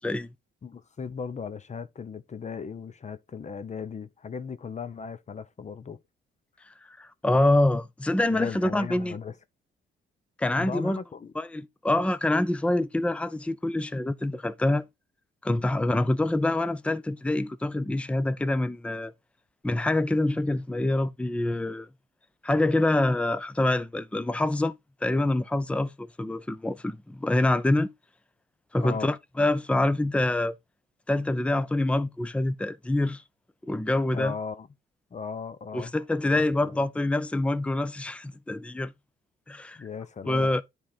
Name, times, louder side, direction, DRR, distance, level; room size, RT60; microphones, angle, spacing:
voice 1, 0.6-6.0 8.2-9.4 10.6-11.3 28.8-29.1 34.1-34.7 35.1-35.9 36.2-36.8 39.7-40.6, left 6 dB, 35° left, 0.9 m, -37 dB
voice 2, 6.9-9.1 10.4-11.0 11.4-14.8 15.4-19.1 19.6-21.9 22.4-24.8 25.0-27.9 28.7-30.5 31.1-33.2 33.6-34.3 35.7-38.9 39.5-39.8 40.3-40.6, left 2 dB, 5° left, 0.6 m, -26 dB
10.0 x 3.7 x 4.2 m
cardioid pair, 90°, 20 cm